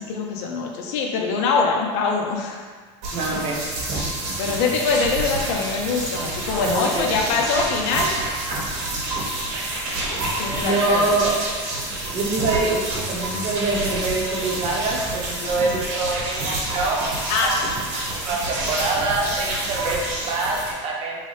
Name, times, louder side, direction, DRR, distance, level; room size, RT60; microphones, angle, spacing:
voice 1, 0.1-2.6 4.4-8.1 8.6-8.7 10.4-11.0 15.4-15.5 17.3-17.5, left 4 dB, 70° left, 1 dB, 0.6 m, -23 dB
sound 1, 3.0-20.7, right 2 dB, 65° right, 1.0 m, -28 dB
voice 2, 3.1-3.6 6.6-7.4 10.6-11.3 12.1-12.8 13.1-17.5 18.2-21.3, right 3 dB, 40° right, -3 dB, 0.7 m, -25 dB
3.1 x 2.8 x 3.1 m, 1.5 s
supercardioid pair, 130°, 15 cm